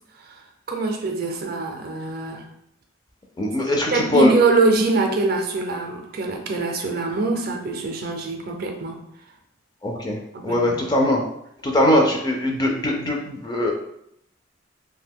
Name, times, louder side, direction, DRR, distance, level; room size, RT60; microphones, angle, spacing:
voice 1, 0.7-2.5 3.9-9.0 10.3-10.9, right 3 dB, 50° right, 3 dB, 0.4 m, -23 dB
voice 2, 3.4-4.3 9.8-10.2 10.4-11.2 11.6-13.7, left 1 dB, 20° left, 1 dB, 0.4 m, -21 dB
2.6 x 2.2 x 3.4 m, 0.76 s
head